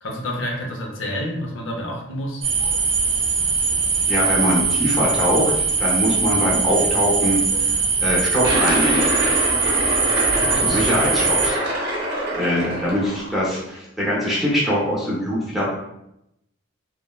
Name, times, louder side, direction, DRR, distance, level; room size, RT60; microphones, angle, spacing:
voice 1, 0.0-2.4 10.4-10.8, equal, 85° left, 0 dB, 0.6 m, -29 dB
sound 1, 2.4-11.5, right 4 dB, 30° right, 0.3 m, -21 dB
voice 2, 4.0-7.4 8.0-9.1 10.6-11.6 12.3-15.6, equal, ahead, -6 dB, 0.7 m, -22 dB
sound 2, 8.4-13.4, right 1 dB, 55° right, 0.8 m, -24 dB
3.1 x 2.1 x 2.2 m, 0.83 s
head